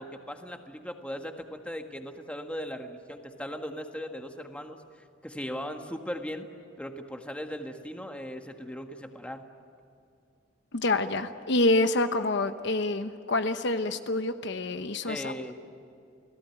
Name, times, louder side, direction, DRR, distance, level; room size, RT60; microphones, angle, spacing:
voice 1, 0.0-4.8 5.2-6.5 6.8-9.4 15.1-15.5, equal, 5° left, 4 dB, 1.6 m, -38 dB
voice 2, 10.7-15.3, left 2 dB, 65° left, 9 dB, 1.0 m, -27 dB
29.5 x 18.5 x 9.2 m, 2.5 s
head